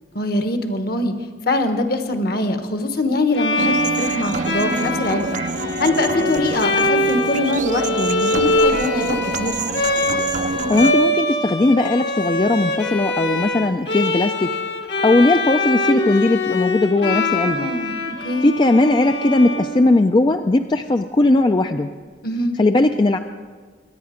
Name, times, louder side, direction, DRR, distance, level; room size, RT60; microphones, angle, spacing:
voice 1, 0.1-1.1 1.5-5.4 5.8-9.5 17.4-18.5 22.2-22.6, left 2 dB, 55° left, 7 dB, 1.2 m, -23 dB
Bowed string instrument, 3.3-20.3, left 1 dB, 75° left, 1.7 m, -23 dB
sound 1, 3.6-10.9, right 4 dB, 45° right, 0.5 m, -27 dB
voice 2, 10.7-14.5 15.0-17.7 18.4-21.9 22.6-23.2, left 2 dB, 25° left, 7 dB, 0.4 m, -18 dB
23.0 x 9.4 x 5.0 m, 1.6 s
head